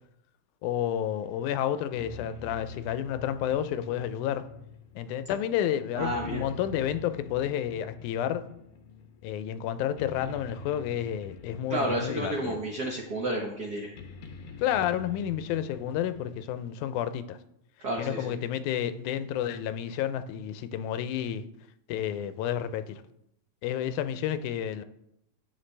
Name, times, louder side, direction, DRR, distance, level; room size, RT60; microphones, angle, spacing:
voice 1, 0.6-4.4 5.0-8.4 9.2-12.6 14.6-17.4 18.0-21.4 21.9-23.0 23.6-24.8, left 10 dB, 90° left, 2.0 m, -30 dB
sound 1, 1.0-16.7, left 5 dB, 70° left, 1.2 m, -47 dB
voice 2, 5.9-6.4 11.7-13.9 17.8-18.3, right 1 dB, 80° right, 0.8 m, -31 dB
10.0 x 7.9 x 3.3 m
omnidirectional pair, 3.4 m